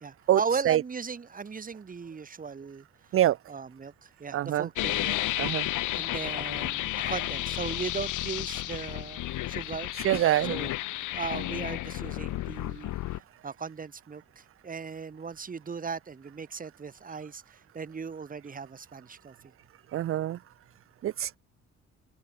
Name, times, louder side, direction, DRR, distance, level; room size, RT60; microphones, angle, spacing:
voice 1, 0.0-2.9 3.5-5.2 5.4-9.9 10.4-10.7 11.1-13.0 13.4-19.3, right 5 dB, 30° right, 1.2 m, -37 dB
voice 2, 4.3-4.7 5.4-5.7 9.9-10.6 19.9-20.4 21.0-21.4, right 12 dB, 45° right, 0.5 m, -25 dB
sound 1, 4.8-13.2, left 15 dB, 85° left, 2.0 m, -32 dB
open air
cardioid pair, 90°, 30 cm